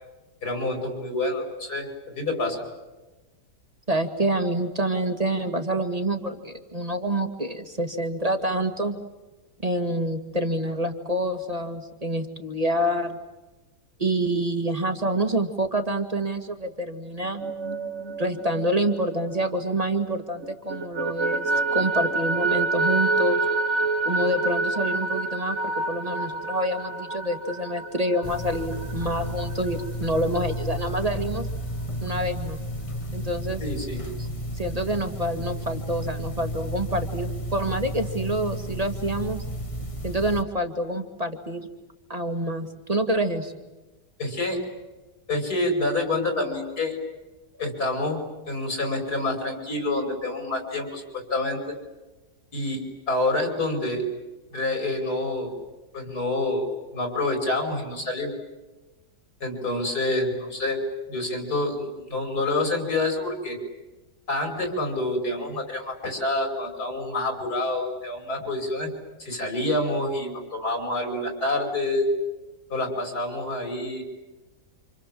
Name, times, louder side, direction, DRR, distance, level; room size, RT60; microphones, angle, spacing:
voice 1, 0.4-2.6 33.6-34.0 44.2-44.6 45.3-47.0 47.6-51.6 52.5-52.8 53.1-54.0 54.5-55.5 55.9-58.3 59.4-60.8 61.1-63.6 64.3-68.9 69.2-72.1 72.7-74.0, left 2 dB, 65° left, 4 dB, 6.3 m, -27 dB
voice 2, 3.9-9.0 9.6-13.2 14.0-17.4 18.2-23.4 24.1-31.5 32.0-32.6 33.1-33.6 34.2-34.3 34.6-39.4 40.0-41.7 42.1-43.5, right 1 dB, 20° right, 7 dB, 1.9 m, -27 dB
sound 1, 17.2-20.1 20.4-29.8, right 3 dB, 45° right, 1.4 m, -28 dB
sound 2, 28.2-40.4, equal, 20° left, 1.1 m, -32 dB
29.0 x 27.0 x 7.6 m, 1.1 s
omnidirectional pair, 1.8 m